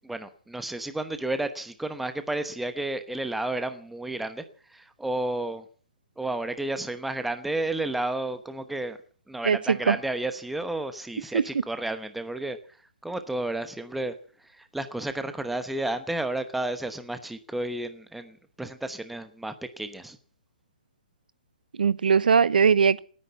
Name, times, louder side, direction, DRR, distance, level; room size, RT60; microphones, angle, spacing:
voice 1, 0.0-4.4 4.7-5.6 6.2-9.0 9.3-12.6 13.0-14.1 14.5-20.2, right 2 dB, ahead, 1.0 m, -32 dB
voice 2, 9.4-10.0 11.3-11.4 21.8-23.0, right 6 dB, 90° right, 0.9 m, -20 dB
18.0 x 10.0 x 8.1 m
hypercardioid pair, 165°, 5 cm